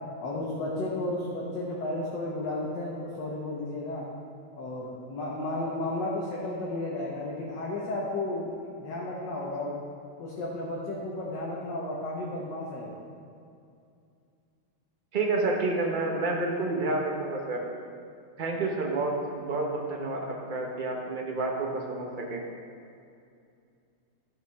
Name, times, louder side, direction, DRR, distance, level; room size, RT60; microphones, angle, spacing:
voice 1, 0.2-4.0 4.6-9.8 10.2-12.9, left 2 dB, 60° left, -5 dB, 1.6 m, -33 dB
voice 2, 15.1-17.6 18.4-19.2 19.4-22.4, right 3 dB, 40° right, 0 dB, 0.7 m, -29 dB
13.5 x 5.8 x 3.4 m, 2.5 s
omnidirectional pair, 2.3 m